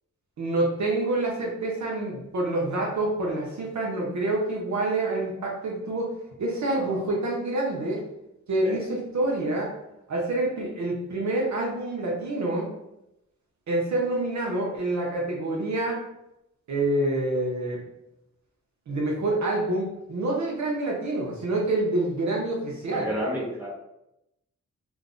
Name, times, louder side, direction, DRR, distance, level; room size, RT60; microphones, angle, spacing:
voice 1, 0.4-6.1 6.4-8.0 8.5-9.7 10.1-12.7 13.7-16.0 16.7-17.8 18.9-23.2, right 2 dB, 70° right, -2 dB, 0.6 m, -27 dB
voice 2, 6.7-7.0 8.6-8.8 22.8-23.7, equal, 5° right, -6 dB, 1.0 m, -31 dB
2.4 x 2.0 x 3.6 m, 0.87 s
wide cardioid pair, 110°, 30 cm